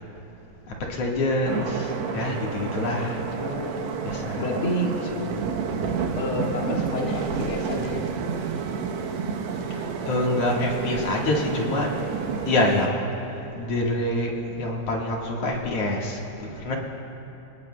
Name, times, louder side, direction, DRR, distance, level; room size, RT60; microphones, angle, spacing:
voice 1, 0.9-3.2 4.0-4.5 5.1-5.3 10.1-11.9 12.5-13.1 13.6-16.7, left 1 dB, 55° left, -2 dB, 1.8 m, -26 dB
sound 1, 1.5-12.9, right 6 dB, 80° right, 3.1 m, -30 dB
voice 2, 3.3-4.0 4.4-4.9 6.1-8.0, left 1 dB, 90° left, -2 dB, 1.1 m, -29 dB
28.5 x 19.0 x 2.2 m, 3.0 s
omnidirectional pair, 4.9 m